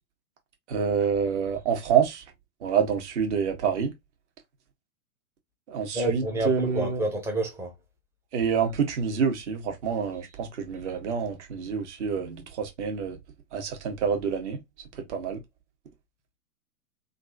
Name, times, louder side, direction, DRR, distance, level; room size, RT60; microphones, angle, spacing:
voice 1, 0.7-2.2 2.6-3.9 5.7-7.0 8.3-13.2 13.5-14.6 15.1-15.4, right 7 dB, 50° right, 1.4 m, -27 dB
voice 2, 5.9-7.7, right 2 dB, 5° right, 0.5 m, -28 dB
3.3 x 2.5 x 2.7 m
hypercardioid pair, 120°, 44 cm